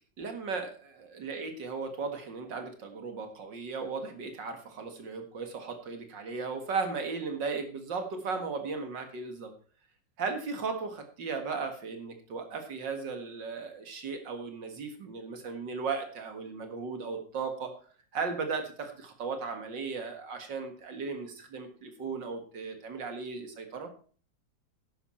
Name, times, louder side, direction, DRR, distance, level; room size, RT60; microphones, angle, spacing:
voice 1, 0.2-9.5 10.2-17.7 18.1-23.9, right 4 dB, 70° right, 6 dB, 2.4 m, -36 dB
11.0 x 10.0 x 4.3 m, 0.41 s
omnidirectional pair, 2.0 m